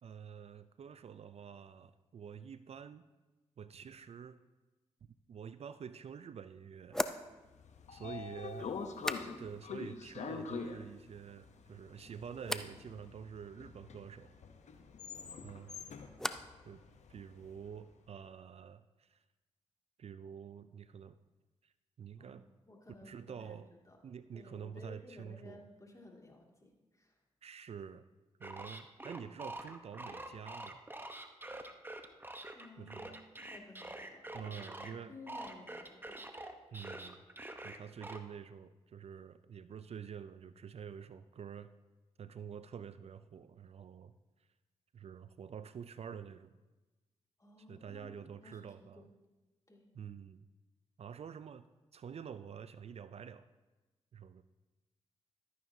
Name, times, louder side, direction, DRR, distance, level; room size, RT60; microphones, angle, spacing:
voice 1, 0.0-3.0 3.6-4.4 5.0-7.1 7.9-8.7 9.4-14.3 15.4-15.9 16.6-16.8 17.1-19.2 20.0-21.1 21.6-22.4 23.0-23.7 24.0-25.7 27.4-28.0 28.4-30.8 32.8-33.2 34.3-35.1 36.7-37.2 37.6-41.7 42.2-44.1 44.9-46.6 47.7-49.1 49.9-50.5 51.0-51.6 51.9-53.5 54.1-54.4, right 7 dB, 55° right, 13 dB, 0.4 m, -48 dB
sound 1, 5.7-5.8 6.9-9.8 10.0-10.6 11.0-11.6 12.4-12.8 15.2-16.6 16.9-17.5, equal, 5° left, 0.6 m, -42 dB
Train / Sliding door, 7.4-17.6, left 5 dB, 70° left, 0.8 m, -45 dB
voice 2, 22.2-23.6 23.9-24.0 24.3-27.2 32.5-33.0 33.4-34.5 34.9-36.2 47.4-48.1 48.4-49.1 49.7-49.9, left 2 dB, 25° left, 0 dB, 2.4 m, -55 dB
sound 2, 28.4-34.9 35.3-38.2, right 1 dB, 15° right, 1.0 m, -46 dB
13.0 x 9.3 x 2.8 m, 1.1 s
supercardioid pair, 40°, 12 cm